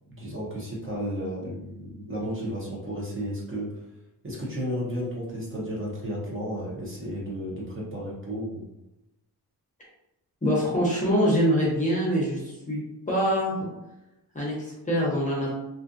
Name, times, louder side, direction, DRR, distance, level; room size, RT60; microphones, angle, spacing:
voice 1, 0.1-3.7 4.2-8.7, equal, 35° right, -5 dB, 0.8 m, -33 dB
voice 2, 10.4-12.8 13.1-13.7 14.3-15.5, equal, 20° left, -5 dB, 0.7 m, -24 dB
2.6 x 2.4 x 2.5 m, 0.93 s
wide cardioid pair, 140°, 38 cm